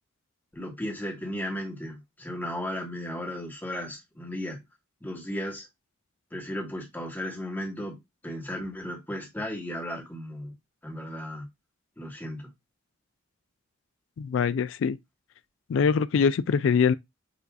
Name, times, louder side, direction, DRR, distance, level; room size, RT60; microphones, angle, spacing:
voice 1, 0.5-4.6 5.0-5.7 6.3-10.6 10.8-11.5 12.0-12.5, left 1 dB, 10° left, 1.3 m, -35 dB
voice 2, 14.2-15.0 15.7-16.9, left 6 dB, 60° left, 0.3 m, -23 dB
7.0 x 2.6 x 2.3 m
head